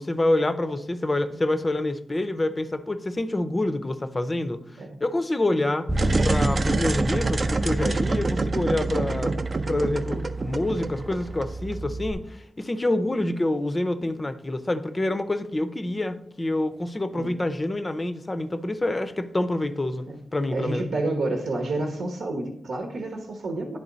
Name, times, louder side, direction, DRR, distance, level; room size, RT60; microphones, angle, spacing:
voice 1, 0.0-5.9 6.2-9.4 9.7-20.1 20.3-20.9, left 1 dB, 20° left, 10 dB, 0.5 m, -27 dB
Bass guitar, 5.9-12.1, right 2 dB, 10° right, 0.9 m, -29 dB
sound 1, 5.9-11.7, right 3 dB, 35° right, 0.4 m, -27 dB
voice 2, 20.5-23.8, right 2 dB, 85° right, 1 dB, 1.1 m, -29 dB
10.5 x 3.5 x 3.9 m, 0.71 s
wide cardioid pair, 115°, 0 cm